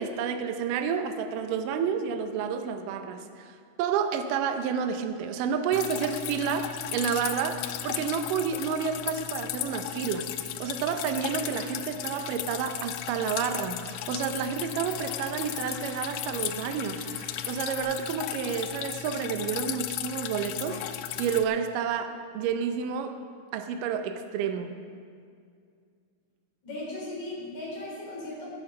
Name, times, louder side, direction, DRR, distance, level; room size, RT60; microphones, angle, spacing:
voice 1, 0.0-23.2 23.5-24.7, right 7 dB, 75° right, 7 dB, 2.3 m, -30 dB
Drip, 5.7-21.4, left 12 dB, 80° left, 2.2 m, -36 dB
sound 1, 10.8-17.8, left 1 dB, 35° left, 2.3 m, -51 dB
voice 2, 26.6-28.5, left 1 dB, 55° left, -4 dB, 5.0 m, -37 dB
15.0 x 9.3 x 5.4 m, 2.2 s
omnidirectional pair, 4.1 m